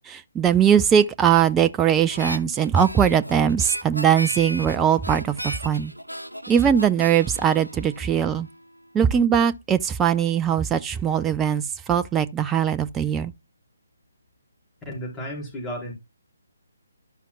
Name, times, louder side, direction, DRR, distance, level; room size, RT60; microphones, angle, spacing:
voice 1, 0.1-5.9 6.5-8.5 8.9-13.3, right 8 dB, 10° right, 0.4 m, -20 dB
Harmonica, 2.1-8.6, equal, 90° right, 0.7 m, -36 dB
voice 2, 14.8-15.9, equal, 10° left, 4.5 m, -33 dB
12.5 x 5.7 x 2.3 m
figure-of-eight pair, 140°, 0 cm